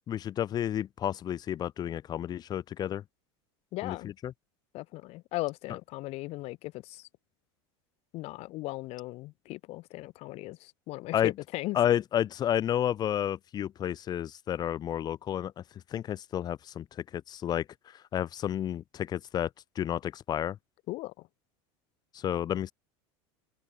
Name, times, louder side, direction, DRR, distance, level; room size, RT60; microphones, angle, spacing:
voice 1, 0.1-3.0 3.8-4.3 11.1-11.3 11.7-15.6 15.9-16.8 17.1-17.6 18.1-19.5 19.7-20.6 22.1-22.7, left 10 dB, 30° left, 1.1 m, -31 dB
voice 2, 3.7-4.1 4.7-7.1 8.1-11.8 20.9-21.1, left 20 dB, 50° left, 2.9 m, -37 dB
supercardioid pair, 145°, 14 cm